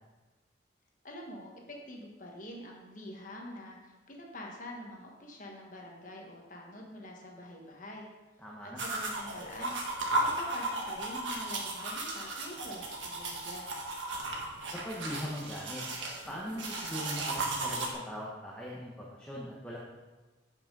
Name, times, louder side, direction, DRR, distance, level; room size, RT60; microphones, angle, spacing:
voice 1, 1.0-8.1 8.6-9.8 10.2-13.7, left 1 dB, 40° left, 0 dB, 1.3 m, -45 dB
voice 2, 8.4-8.8 14.7-15.8 16.3-19.8, equal, 5° left, -4 dB, 1.0 m, -40 dB
sound 1, 8.8-17.9, right 2 dB, 80° right, 1.6 m, -35 dB
7.8 x 5.9 x 5.3 m, 1.2 s
head